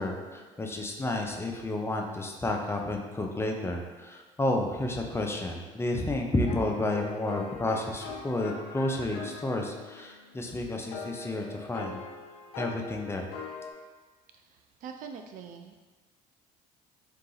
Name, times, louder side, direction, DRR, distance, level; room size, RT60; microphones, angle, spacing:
voice 1, 0.0-12.0 12.6-13.3, left 2 dB, 15° left, 2 dB, 0.6 m, -31 dB
sound 1, 6.4-13.7, left 4 dB, 80° left, 0.5 m, -42 dB
voice 2, 14.3-15.8, right 6 dB, 55° right, 5 dB, 0.4 m, -44 dB
3.7 x 2.8 x 3.9 m, 1.4 s
supercardioid pair, 75°, 16 cm